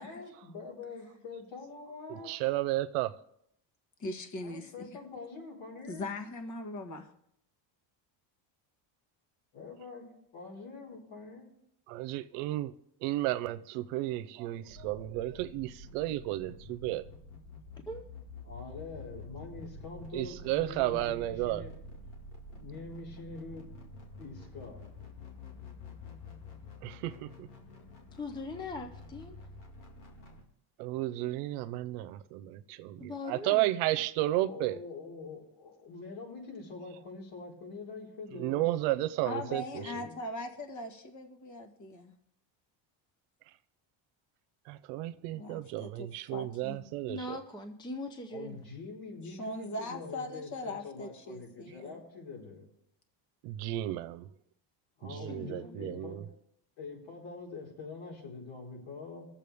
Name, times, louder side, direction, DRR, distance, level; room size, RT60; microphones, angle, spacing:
voice 1, 0.0-2.4 4.4-6.1 9.5-10.1 10.3-11.5 18.4-21.7 22.5-23.7 24.2-24.8 34.5-38.7 39.4-40.1 48.3-52.7 55.0-56.3 56.8-59.3, left 4 dB, 65° left, 4.4 m, -45 dB
voice 2, 2.1-3.1 11.9-12.7 13.0-17.1 20.1-21.7 26.8-27.5 30.8-34.8 38.3-40.0 44.7-47.4 53.4-54.3 55.0-56.2, right 16 dB, 90° right, 0.8 m, -33 dB
voice 3, 4.0-4.9 5.9-7.1 39.2-42.1 45.3-46.9 49.2-52.0, left 2 dB, 35° left, 1.7 m, -40 dB
sound 1, 14.7-30.4, left 2 dB, 85° left, 2.3 m, -48 dB
voice 4, 28.2-29.4 33.0-33.7 47.1-48.7 55.1-56.0, left 2 dB, 10° left, 0.7 m, -41 dB
22.0 x 7.4 x 3.5 m
cardioid pair, 130°, 49 cm